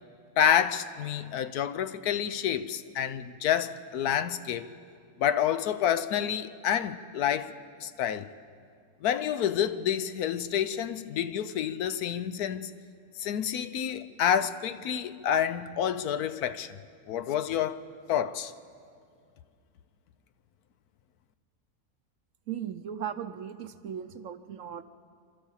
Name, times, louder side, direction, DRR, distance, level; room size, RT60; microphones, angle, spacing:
voice 1, 0.4-4.7 5.2-7.5 7.8-8.3 9.0-12.7 13.2-16.8 17.1-17.8 18.1-18.5, left 9 dB, 80° left, 1.2 m, -28 dB
voice 2, 22.5-24.8, right 9 dB, 65° right, 1.0 m, -37 dB
27.5 x 13.0 x 7.3 m
omnidirectional pair, 1.6 m